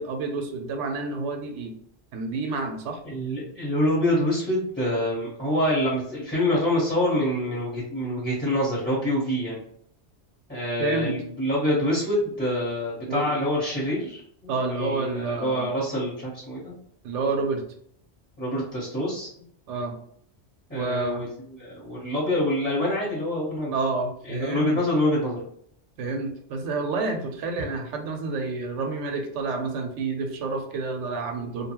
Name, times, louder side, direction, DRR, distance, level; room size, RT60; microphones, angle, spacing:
voice 1, 0.0-1.7 2.1-3.0 10.8-11.2 13.1-13.3 14.5-15.7 17.0-17.6 19.7-20.0 20.7-21.2 23.7-24.8 26.0-31.7, right 3 dB, 85° right, 4 dB, 0.9 m, -29 dB
voice 2, 3.0-9.6 10.5-16.7 18.4-19.3 20.7-21.3 21.6-23.7 24.3-25.4, left 1 dB, 10° left, -8 dB, 0.8 m, -26 dB
2.7 x 2.2 x 2.9 m, 0.66 s
omnidirectional pair, 1.2 m